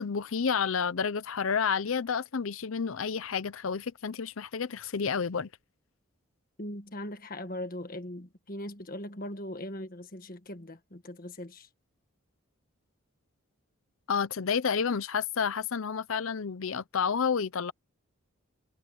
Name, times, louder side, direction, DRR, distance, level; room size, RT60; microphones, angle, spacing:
voice 1, 0.0-5.5 14.1-17.7, left 6 dB, 70° left, 0.6 m, -30 dB
voice 2, 6.6-11.7, left 1 dB, 40° left, 1.6 m, -40 dB
head